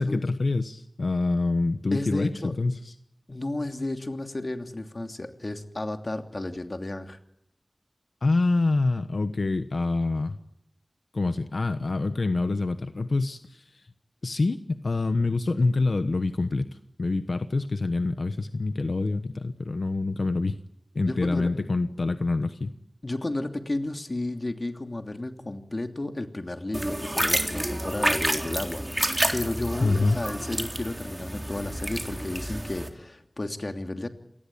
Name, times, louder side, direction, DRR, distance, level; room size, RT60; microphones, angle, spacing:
voice 1, 0.0-2.3 2.6-2.9 8.2-10.4 11.1-13.6 14.2-16.7 17.0-20.6 20.9-22.8 29.8-30.2, left 3 dB, 90° left, 9 dB, 1.1 m, -26 dB
voice 2, 1.9-2.5 3.3-7.2 21.0-21.5 23.0-34.1, left 2 dB, 50° left, 6 dB, 2.9 m, -33 dB
sound 1, 26.7-32.9, right 1 dB, 20° right, 3.6 m, -29 dB
28.0 x 19.0 x 8.8 m, 0.73 s
wide cardioid pair, 50°, 0 cm